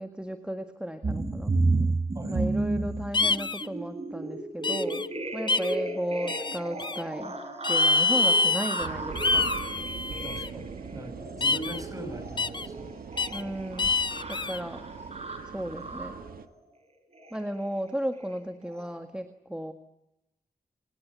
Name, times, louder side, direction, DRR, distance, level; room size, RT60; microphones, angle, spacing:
voice 1, 0.0-1.5 2.3-5.1 5.3-7.4 7.7-9.5 13.3-13.9 14.3-14.8 15.5-16.1 17.3-19.7, equal, 5° right, 6 dB, 1.8 m, -34 dB
sound 1, 1.0-16.4 17.1-17.4 17.7-17.9 18.2-18.4 18.6-18.9, right 3 dB, 45° right, 5.9 m, -33 dB
voice 2, 2.1-2.5 10.1-12.9, right 1 dB, 25° right, 9 dB, 6.7 m, -41 dB
sound 2, 3.1-3.7 4.6-5.1 5.5-5.8 6.3-7.0 7.6-8.9 9.2-10.5 11.4-11.8 12.4-12.7 13.2-13.4 13.8-14.6, left 3 dB, 30° left, 0.8 m, -26 dB
sound 3, 8.8-16.5, right 6 dB, 80° right, 1.7 m, -42 dB
26.5 x 20.0 x 9.7 m, 0.94 s
cardioid pair, 80°, 15 cm